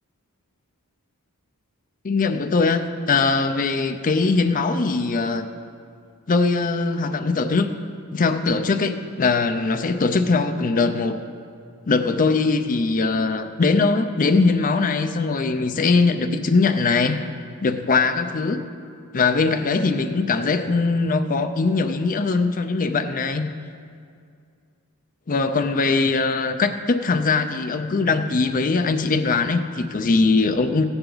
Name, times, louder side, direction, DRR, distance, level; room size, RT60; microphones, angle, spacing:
voice 1, 2.0-5.5 6.3-7.7 8.1-11.2 11.9-17.2 17.6-18.6 19.1-23.5 25.3-30.8, left 4 dB, 40° left, 8 dB, 0.5 m, -21 dB
15.5 x 9.8 x 3.9 m, 2.3 s
head